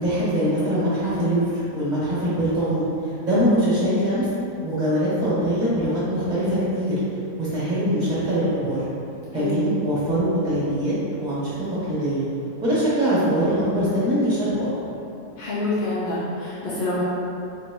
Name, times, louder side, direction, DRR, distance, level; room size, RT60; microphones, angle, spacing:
voice 1, 0.0-4.3 4.6-6.9 7.4-8.8 9.3-10.9 11.2-11.5 11.8-12.2 12.6-14.7, equal, 30° right, -9 dB, 1.2 m, -23 dB
voice 2, 9.3-9.6 15.4-17.0, left 2 dB, 55° left, -10 dB, 0.6 m, -26 dB
4.2 x 2.8 x 2.9 m, 2.7 s
omnidirectional pair, 1.6 m